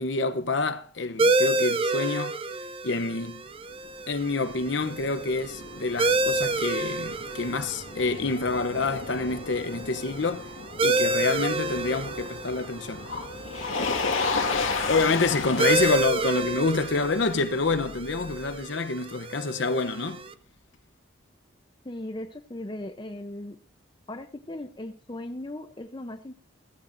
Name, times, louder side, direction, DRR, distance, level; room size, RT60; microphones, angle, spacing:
voice 1, 0.0-2.4 2.8-3.4 4.1-10.5 10.8-13.1 14.9-20.2, left 3 dB, 65° left, 0.8 m, -27 dB
sound 1, 1.2-20.3, right 2 dB, 25° right, 0.5 m, -30 dB
Motor vehicle (road), 3.5-18.6, left 4 dB, 85° left, 1.9 m, -34 dB
voice 2, 21.8-23.6 24.1-26.4, left 1 dB, 25° left, 0.7 m, -38 dB
16.0 x 14.5 x 2.6 m
head